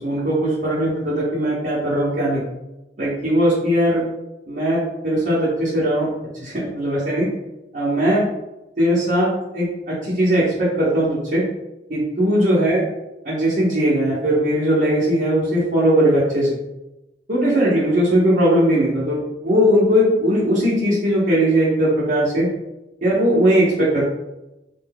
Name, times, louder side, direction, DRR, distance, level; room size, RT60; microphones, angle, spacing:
voice 1, 0.0-2.4 3.0-4.0 4.5-6.1 6.4-7.3 7.7-8.2 8.8-11.4 11.9-12.8 13.2-16.6 17.3-22.5 23.0-24.0, equal, 45° right, -11 dB, 0.9 m, -19 dB
2.6 x 2.2 x 3.5 m, 0.97 s
head